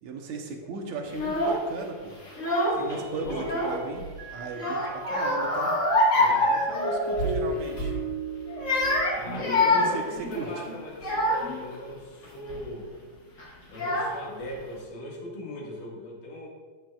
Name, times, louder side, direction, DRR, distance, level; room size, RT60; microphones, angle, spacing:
voice 1, 0.0-2.2 2.7-4.0 4.3-5.7 6.5-7.9 9.6-10.0 10.4-10.5, right 4 dB, 70° right, 2 dB, 2.1 m, -37 dB
Child speech kid speaking / Crying sobbing, 1.1-1.6 2.3-2.9 3.3-4.1 4.5-7.4 7.7-8.0 8.5-11.6 12.2-12.6 13.4-13.5 13.7-14.4, left 1 dB, 50° left, 0.9 m, -26 dB
voice 2, 2.7-3.6 6.1-6.5 9.1-12.9 13.7-16.5, left 1 dB, 75° left, -2 dB, 3.3 m, -38 dB
Mallet percussion, 2.9-3.8 4.2-9.6, right 2 dB, 50° right, 2.5 m, -35 dB
12.0 x 9.5 x 2.3 m, 1.5 s
omnidirectional pair, 3.8 m